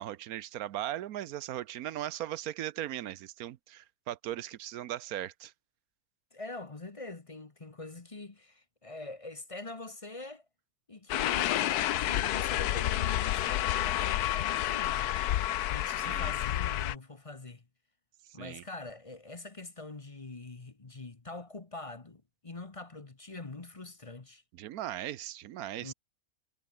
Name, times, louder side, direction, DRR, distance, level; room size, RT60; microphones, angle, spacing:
voice 1, 0.0-5.5 16.0-16.3 18.4-18.6 24.6-25.9, right 12 dB, 70° right, 1.1 m, -38 dB
voice 2, 6.3-10.4 10.9-15.2 15.7-17.6 18.3-24.4 25.8-25.9, left 2 dB, 25° left, 1.1 m, -44 dB
Pas a nivell, 11.1-17.0, left 13 dB, 75° left, 1.2 m, -29 dB
omnidirectional pair, 1.7 m